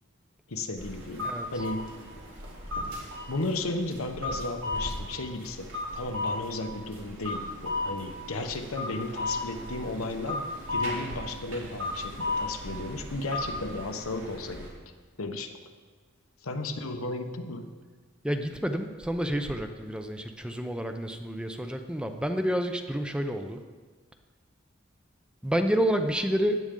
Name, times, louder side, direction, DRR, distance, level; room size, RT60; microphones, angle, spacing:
voice 1, 0.5-1.9 3.3-14.7 15.2-15.6 16.4-17.7, left 2 dB, 85° left, 6 dB, 1.0 m, -34 dB
sound 1, 0.8-14.7, left 2 dB, 65° right, 2.7 m, -35 dB
voice 2, 18.2-23.6 25.4-26.6, equal, 5° right, 6 dB, 0.6 m, -29 dB
15.5 x 10.5 x 3.8 m, 1.5 s
head